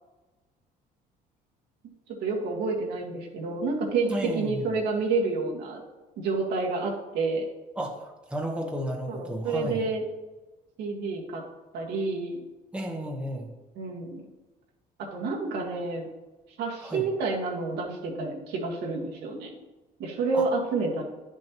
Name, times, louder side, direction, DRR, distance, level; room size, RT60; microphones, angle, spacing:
voice 1, 2.2-5.8 6.2-7.4 9.1-10.0 10.8-11.4 11.7-12.4 13.8-14.2 15.0-16.1 16.6-19.5 20.0-21.0, right 3 dB, 80° right, -1 dB, 1.8 m, -29 dB
voice 2, 4.0-4.7 7.8-9.8 12.7-13.5 16.8-17.0 20.3-20.5, right 1 dB, 5° right, 0 dB, 1.3 m, -33 dB
10.0 x 6.3 x 3.0 m, 1.1 s
cardioid pair, 110°, 17 cm